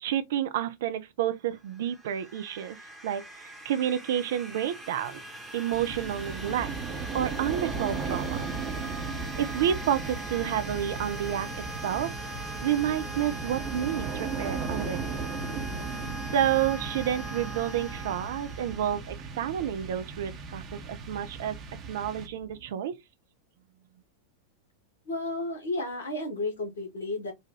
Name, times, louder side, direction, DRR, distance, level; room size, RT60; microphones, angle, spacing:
voice 1, 0.0-2.8 3.0-5.2 5.5-6.7 7.1-8.5 9.4-12.1 12.6-15.2 16.3-21.6 21.9-23.0, right 10 dB, 55° right, 0.6 m, -30 dB
sound 1, 1.6-19.3, right 1 dB, 10° right, 1.3 m, -40 dB
sound 2, 5.7-22.7, right 5 dB, 30° right, 1.0 m, -37 dB
voice 2, 25.1-27.3, left 2 dB, 65° left, 2.0 m, -32 dB
4.1 x 2.5 x 3.2 m
figure-of-eight pair, 90°, 0 cm